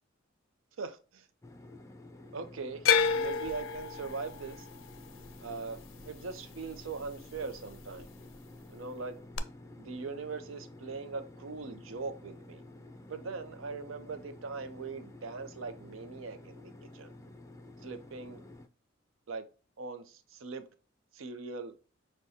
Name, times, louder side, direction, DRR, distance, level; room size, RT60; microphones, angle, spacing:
voice 1, 0.8-1.3 2.3-4.7 5.4-5.8 6.1-8.1 8.7-9.2 9.8-12.6 13.1-16.6 16.9-17.1 17.8-18.4 19.3-19.4 19.8-20.7 21.1-21.7, right 4 dB, 85° right, 0.6 m, -41 dB
sound 1, 1.4-18.7, left 2 dB, 15° left, 0.4 m, -51 dB
sound 2, 2.8-7.0 7.3-8.0 9.4-9.5, left 6 dB, 80° left, 0.4 m, -31 dB
6.3 x 2.2 x 2.7 m
head